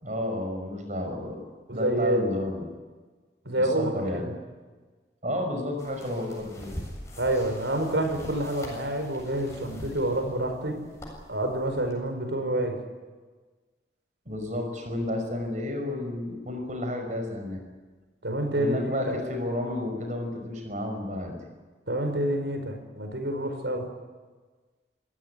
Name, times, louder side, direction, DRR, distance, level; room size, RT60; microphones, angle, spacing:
voice 1, 0.0-1.4 1.7-2.6 3.6-4.2 5.2-6.7 14.3-17.6 18.5-21.4, left 1 dB, 40° right, 4 dB, 5.6 m, -31 dB
voice 2, 1.7-2.2 3.4-4.3 7.2-10.8 11.3-12.8 18.2-19.2 21.9-23.9, right 1 dB, 75° right, 6 dB, 5.1 m, -28 dB
sound 1, 5.8-11.9, equal, 15° left, 7.7 m, -43 dB
27.5 x 16.5 x 9.9 m, 1.4 s
head